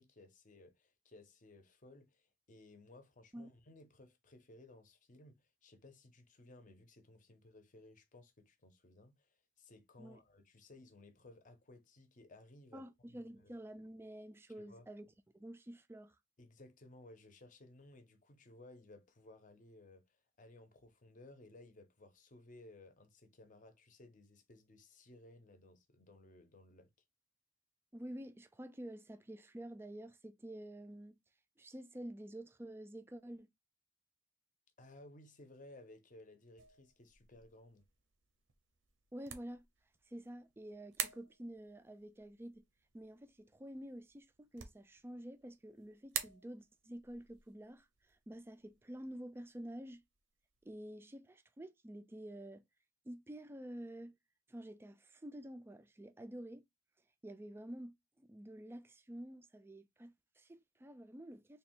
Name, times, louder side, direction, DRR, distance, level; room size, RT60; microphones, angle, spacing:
voice 1, 0.0-13.5 14.6-14.9 16.4-26.9 34.8-37.8, left 2 dB, 40° left, 0.7 m, -59 dB
voice 2, 12.7-16.2 27.9-31.2 31.6-33.5 39.1-39.7 40.1-42.6 42.9-50.0 50.6-52.6 53.0-54.2 54.5-56.6 57.2-61.6, right 1 dB, 10° right, 0.3 m, -49 dB
sound 1, 36.6-50.7, right 9 dB, 80° right, 0.7 m, -50 dB
3.3 x 2.3 x 4.4 m
head